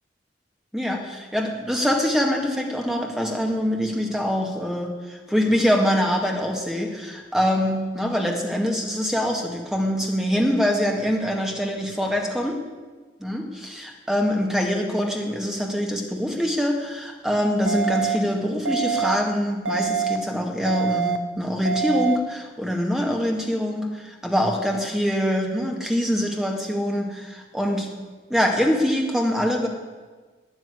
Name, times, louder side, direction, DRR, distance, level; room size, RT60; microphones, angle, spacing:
voice 1, 0.7-12.6 13.2-27.9 28.3-29.7, equal, 5° right, 1 dB, 1.9 m, -24 dB
sound 1, 17.7-18.2 18.7-19.2 19.7-20.2 20.7-21.2 21.7-22.2, right 7 dB, 90° right, 0.9 m, -25 dB
12.5 x 8.9 x 9.9 m, 1.4 s
head